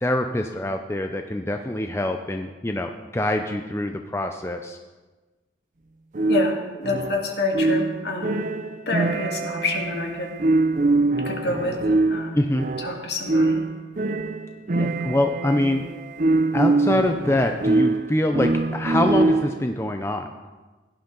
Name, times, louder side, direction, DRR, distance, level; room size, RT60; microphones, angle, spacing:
voice 1, 0.0-4.8 12.3-12.7 14.7-15.8 16.5-20.3, left 1 dB, 15° left, 5 dB, 0.5 m, -24 dB
sound 1, 6.1-19.7, right 2 dB, 40° right, 0.5 m, -23 dB
voice 2, 6.3-8.5 8.9-10.4 11.0-12.5 12.8-13.6, left 2 dB, 65° left, 1 dB, 2.0 m, -28 dB
17.0 x 11.5 x 3.9 m, 1.2 s
head